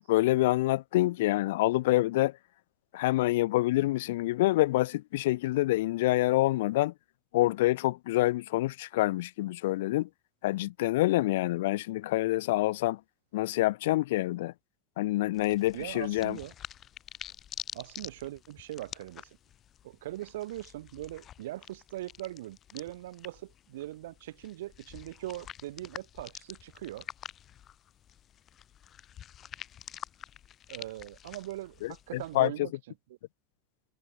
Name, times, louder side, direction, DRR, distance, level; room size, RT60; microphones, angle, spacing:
voice 1, 0.1-2.3 2.9-6.9 7.3-10.1 10.4-13.0 13.3-14.5 15.0-16.4 31.8-32.5, left 17 dB, 70° left, 0.7 m, -27 dB
sound 1, 15.3-32.5, left 10 dB, 25° left, 2.5 m, -48 dB
voice 2, 15.7-16.5 17.7-19.4 19.8-27.1 30.7-32.7, right 15 dB, 85° right, 1.7 m, -41 dB
supercardioid pair, 170°, 0 cm